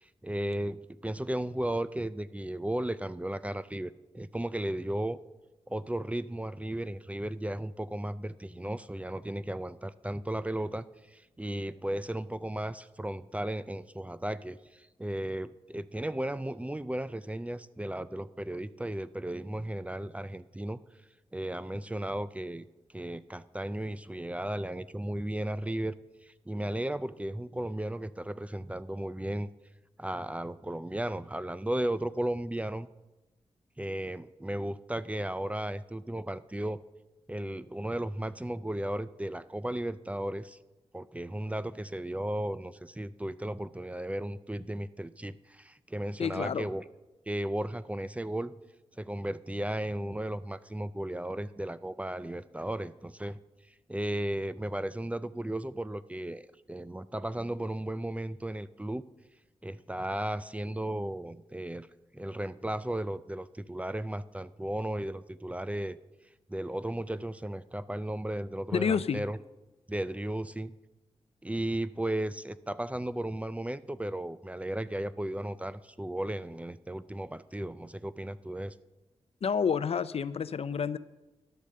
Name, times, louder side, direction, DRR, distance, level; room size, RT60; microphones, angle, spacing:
voice 1, 0.0-5.2 5.7-20.8 21.3-22.7 22.9-26.0 26.2-29.5 30.0-32.9 33.8-36.8 37.3-40.6 40.9-46.8 47.3-48.6 49.0-53.4 53.9-59.0 59.6-61.9 62.1-66.0 66.5-69.4 69.9-70.7 71.4-78.7, right 1 dB, 10° right, 15 dB, 0.4 m, -35 dB
voice 2, 46.2-46.7 68.7-69.2 79.4-81.0, left 6 dB, 65° left, 15 dB, 0.5 m, -29 dB
11.5 x 8.5 x 6.6 m, 1.1 s
cardioid pair, 70°, 11 cm